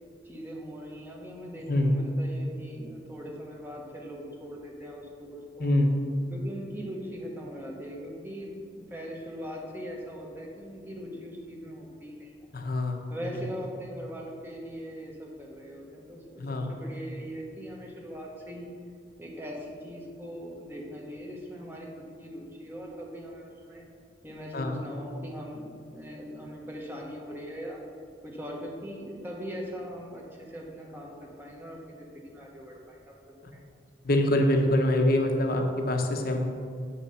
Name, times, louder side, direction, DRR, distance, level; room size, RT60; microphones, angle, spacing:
voice 1, 0.2-5.7 6.3-12.3 13.1-16.4 16.7-18.7 19.2-23.9 24.2-27.8 28.2-33.1, equal, 10° right, -2 dB, 1.3 m, -40 dB
voice 2, 5.6-5.9 12.5-13.0 16.4-16.7 24.5-24.7 34.0-36.4, left 1 dB, 55° left, 3 dB, 0.9 m, -24 dB
8.3 x 5.7 x 5.6 m, 2.2 s
head